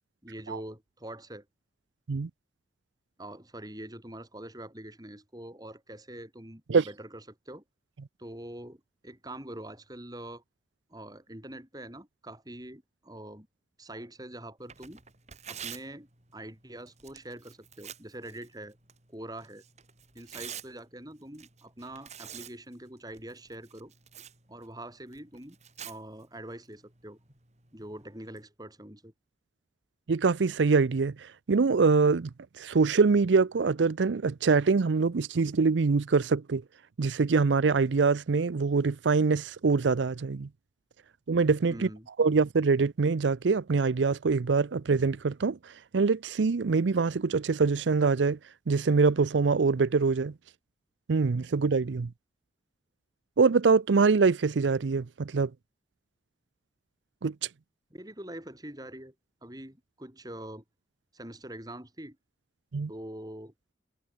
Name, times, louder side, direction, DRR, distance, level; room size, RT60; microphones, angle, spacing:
voice 1, 0.2-1.5 3.2-7.6 8.2-10.4 10.9-13.5 13.8-15.0 15.5-18.8 19.1-19.6 20.1-23.9 24.5-25.6 25.8-27.2 27.7-29.1 41.7-42.1 57.9-59.1 59.4-60.6 61.1-62.2 62.9-63.5, right 1 dB, 20° right, 6.5 m, -44 dB
Tearing, 14.6-28.4, right 8 dB, 40° right, 5.3 m, -49 dB
voice 2, 30.1-32.3 32.6-36.6 37.0-40.5 41.3-41.9 42.2-48.4 48.7-50.3 51.1-52.1 53.4-55.5 57.2-57.5 62.7-62.9, right 4 dB, 90° right, 0.5 m, -24 dB
head